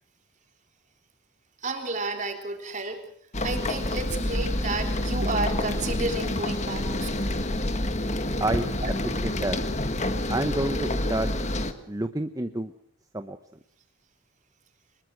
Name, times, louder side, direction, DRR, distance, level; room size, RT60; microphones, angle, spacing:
voice 1, 1.6-3.1 3.4-7.4 8.8-8.9, right 3 dB, 35° right, 4 dB, 3.7 m, -32 dB
sound 1, 3.3-11.7, left 1 dB, 35° left, 1.6 m, -28 dB
voice 2, 9.2-9.6 10.3-11.3 11.9-12.7 13.1-13.4, right 1 dB, 15° right, 8 dB, 0.9 m, -28 dB
24.5 x 21.5 x 6.1 m, 0.63 s
head